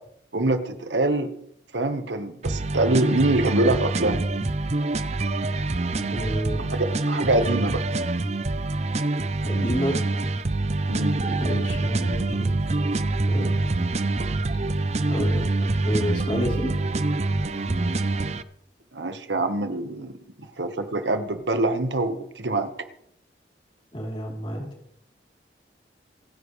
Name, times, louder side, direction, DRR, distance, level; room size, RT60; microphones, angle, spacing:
voice 1, 0.3-1.3 1.7-4.2 6.7-7.8 10.9-11.2 18.9-20.2 20.6-22.7, right 2 dB, 90° right, 8 dB, 1.4 m, -24 dB
sound 1, 2.4-18.4, right 2 dB, 40° right, 0.6 m, -25 dB
voice 2, 6.1-6.7 9.5-10.0 11.2-12.6 13.3-13.6 15.1-15.5 15.8-16.7 23.9-24.7, equal, 30° left, -2 dB, 3.6 m, -29 dB
27.0 x 10.0 x 3.3 m, 0.70 s
head